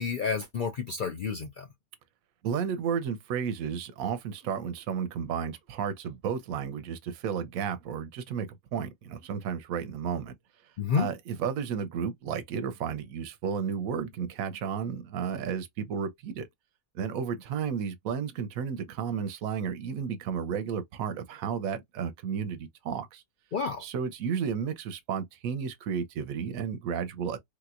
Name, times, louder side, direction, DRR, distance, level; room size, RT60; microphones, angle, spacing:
voice 1, 0.0-1.7 10.8-11.1 23.5-23.8, left 6 dB, 60° left, 0.5 m, -30 dB
voice 2, 2.4-10.3 10.9-16.5 16.9-23.2 23.8-27.4, right 7 dB, 85° right, 1.0 m, -32 dB
3.2 x 2.9 x 2.4 m
omnidirectional pair, 1.4 m